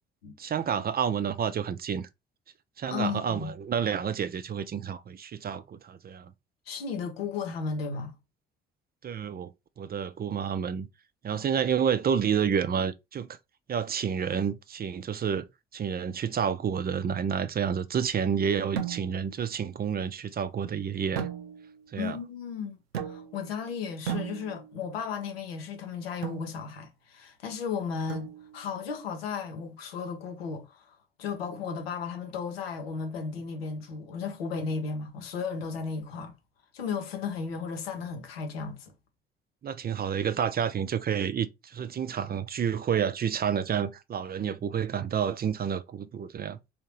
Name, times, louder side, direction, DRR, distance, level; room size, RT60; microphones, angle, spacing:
voice 1, 0.4-2.1 2.8-6.3 9.0-9.5 9.8-10.9 11.2-13.4 13.7-15.5 15.7-21.3 21.9-22.2 39.6-46.6, right 7 dB, 30° right, 0.5 m, -29 dB
voice 2, 2.8-3.5 6.7-8.2 11.3-11.4 22.0-36.4 36.7-38.9, left 5 dB, 90° left, 0.7 m, -35 dB
sound 1, 18.8-19.4 21.2-21.9 22.9-23.5 24.1-24.9 26.2-26.6 28.1-28.7, right 9 dB, 90° right, 0.5 m, -36 dB
3.5 x 2.7 x 3.0 m
hypercardioid pair, 50°, 30 cm